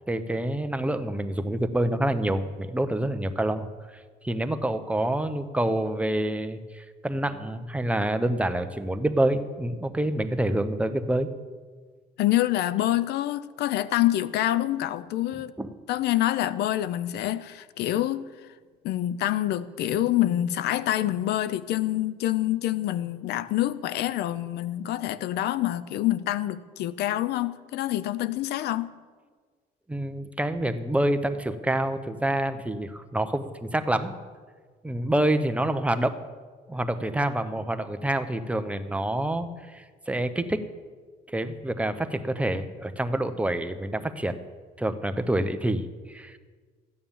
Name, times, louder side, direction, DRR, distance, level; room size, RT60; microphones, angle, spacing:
voice 1, 0.1-3.7 4.2-11.3 15.6-15.7 29.9-34.1 34.8-36.1 36.7-40.6 41.3-44.4 44.8-46.4, right 1 dB, 10° right, 0.9 m, -27 dB
voice 2, 12.2-15.5 15.9-18.3 18.8-28.9, left 13 dB, 75° left, 0.6 m, -26 dB
14.5 x 9.6 x 7.3 m
cardioid pair, 110°, 17 cm